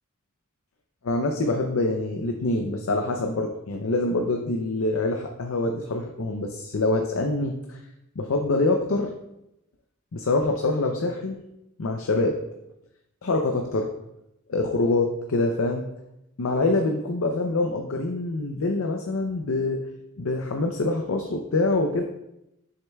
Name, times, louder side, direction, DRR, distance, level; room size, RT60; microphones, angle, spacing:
voice 1, 1.0-7.8 8.2-9.1 10.1-11.4 11.8-12.4 13.2-13.9 14.5-15.9 16.4-19.8 20.2-22.0, left 2 dB, 70° left, 4 dB, 0.6 m, -25 dB
7.2 x 6.5 x 2.3 m, 0.87 s
head